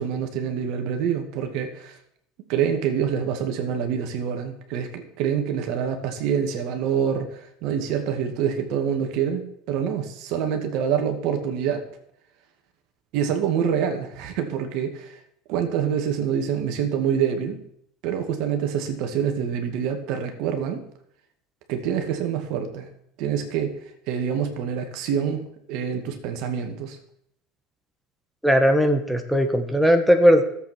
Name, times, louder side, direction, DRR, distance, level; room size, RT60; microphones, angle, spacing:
voice 1, 0.0-2.0 2.5-11.8 13.1-15.2 15.5-17.6 18.0-20.8 21.7-22.9 23.2-23.7 24.1-27.0, right 8 dB, 65° right, 5 dB, 2.2 m, -26 dB
voice 2, 28.4-30.4, equal, ahead, 5 dB, 1.7 m, -18 dB
13.0 x 8.1 x 6.3 m, 0.73 s
hypercardioid pair, 80°, 0 cm